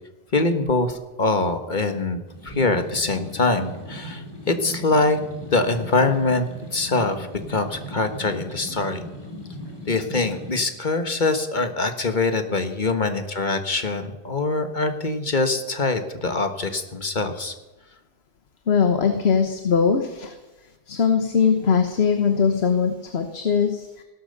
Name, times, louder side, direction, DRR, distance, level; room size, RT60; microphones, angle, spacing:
voice 1, 0.3-5.2 5.5-9.0 9.9-17.5, left 3 dB, 45° left, 7 dB, 1.5 m, -24 dB
sound 1, 2.3-10.6, equal, 20° left, 3.4 m, -38 dB
voice 2, 18.7-20.3 20.9-24.0, left 6 dB, 70° left, 7 dB, 1.4 m, -21 dB
16.0 x 12.0 x 6.7 m, 1.1 s
omnidirectional pair, 1.1 m